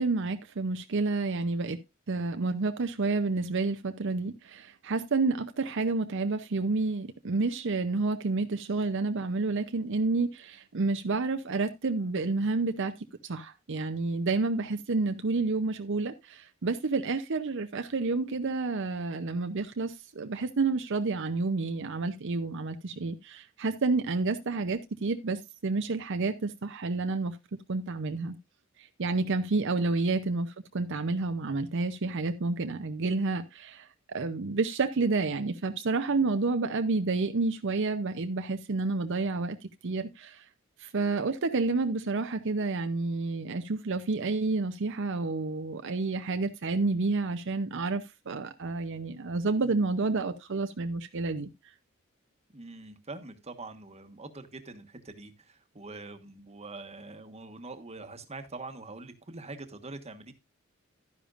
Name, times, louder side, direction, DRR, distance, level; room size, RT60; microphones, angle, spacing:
voice 1, 0.0-1.8 2.1-27.4 27.7-28.4 28.8-39.6 39.8-40.5 40.8-51.5, right 3 dB, 65° right, 0.7 m, -29 dB
voice 2, 52.5-60.3, right 3 dB, 30° right, 1.3 m, -44 dB
12.0 x 10.0 x 2.5 m
head